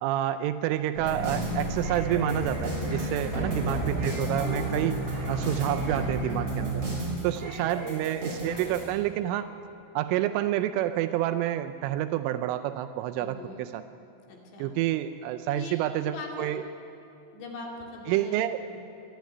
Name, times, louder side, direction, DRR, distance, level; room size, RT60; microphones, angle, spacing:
voice 1, 0.0-5.0 5.3-6.8 7.2-9.5 10.0-13.8 14.6-16.6 18.1-18.6, right 13 dB, 85° right, 10 dB, 3.0 m, -28 dB
sound 1, 0.9-8.8, right 1 dB, 30° right, 6.9 m, -31 dB
voice 2, 3.1-3.8 7.5-8.1 13.2-13.6 14.3-14.7 15.5-15.8 16.0-16.5 17.3-18.4 18.7-18.8, left 3 dB, 60° left, 0 dB, 4.4 m, -41 dB
24.5 x 12.0 x 9.4 m, 2.9 s
omnidirectional pair, 6.0 m